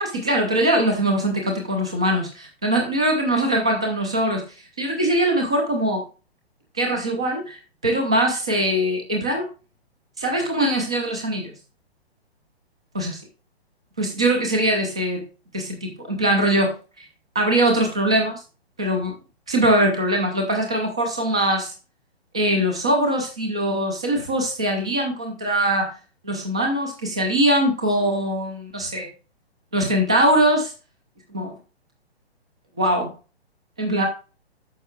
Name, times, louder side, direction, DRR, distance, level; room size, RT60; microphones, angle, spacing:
voice 1, 0.0-4.4 4.8-6.0 6.7-9.5 10.2-11.5 12.9-13.1 14.0-15.3 15.5-17.0 17.3-18.4 18.8-19.2 19.5-21.7 22.3-25.9 26.2-29.1 29.7-30.7 31.3-31.5 32.8-33.1 33.8-34.1, right 1 dB, 5° right, 2 dB, 0.3 m, -22 dB
11.0 x 6.8 x 2.3 m, 0.33 s
figure-of-eight pair, 125°, 32 cm